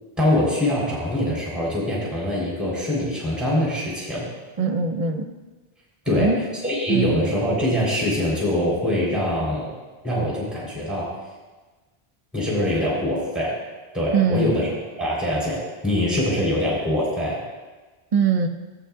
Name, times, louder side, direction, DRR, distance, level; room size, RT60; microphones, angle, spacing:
voice 1, 0.2-4.3 6.1-6.3 6.6-9.7 10.0-11.1 12.3-13.6 13.9-14.7 15.0-17.4, left 1 dB, ahead, -5 dB, 3.7 m, -23 dB
voice 2, 4.6-5.3 6.1-6.4 6.9-7.3 14.1-14.7 18.1-18.5, right 5 dB, 35° right, 5 dB, 0.8 m, -22 dB
17.0 x 8.5 x 2.4 m, 1.3 s
omnidirectional pair, 1.1 m